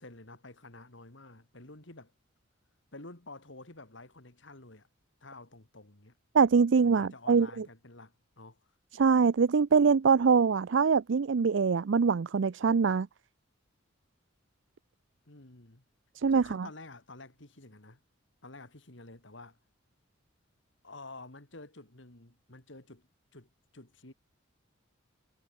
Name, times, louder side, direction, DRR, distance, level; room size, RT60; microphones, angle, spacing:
voice 1, 0.0-2.1 2.9-4.9 5.2-6.2 6.8-8.6 15.2-15.8 16.3-18.0 18.4-19.6 20.8-24.1, left 2 dB, 65° left, 2.7 m, -50 dB
voice 2, 6.3-7.6 8.9-13.1 16.2-16.7, right 5 dB, 65° right, 0.4 m, -24 dB
head